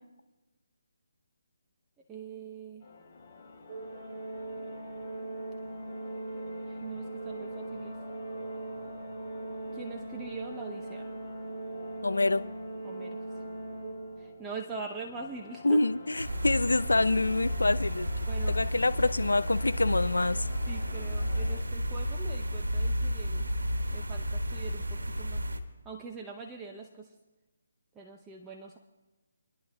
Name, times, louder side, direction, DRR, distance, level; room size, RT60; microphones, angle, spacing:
voice 1, 2.1-2.9 6.6-8.0 9.7-11.1 12.8-13.2 13.5-13.6 14.2-15.8 18.2-18.6 19.0-19.1 20.7-23.5 23.9-25.4 25.8-27.1 28.0-28.8, right 4 dB, 10° right, 0 dB, 0.7 m, -43 dB
sound 1, 2.8-21.6, left 4 dB, 35° left, 3.7 m, -50 dB
Organ, 3.7-14.6, right 2 dB, 40° right, 3.8 m, -40 dB
voice 2, 12.0-12.4 15.6-18.1 18.5-20.5, left 2 dB, 85° left, 13 dB, 0.5 m, -26 dB
sound 2, 16.1-25.6, equal, 85° right, 1.3 m, -32 dB
29.0 x 10.5 x 2.2 m, 1.2 s
figure-of-eight pair, 155°, 0 cm